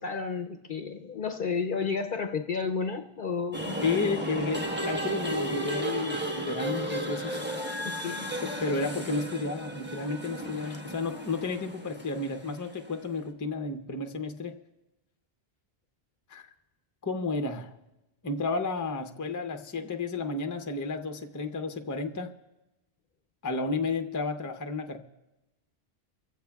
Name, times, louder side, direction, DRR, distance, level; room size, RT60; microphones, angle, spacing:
voice 1, 0.0-3.8 7.8-8.3 10.6-10.8, left 5 dB, 60° left, 5 dB, 0.7 m, -32 dB
sound 1, 3.5-13.0, right 1 dB, 10° right, 1.2 m, -34 dB
voice 2, 3.8-7.4 8.4-14.5 16.3-16.5 17.0-17.7 18.2-22.3 23.4-25.0, left 3 dB, 20° left, 6 dB, 0.6 m, -32 dB
25.0 x 15.5 x 2.3 m, 1.0 s
omnidirectional pair, 1.1 m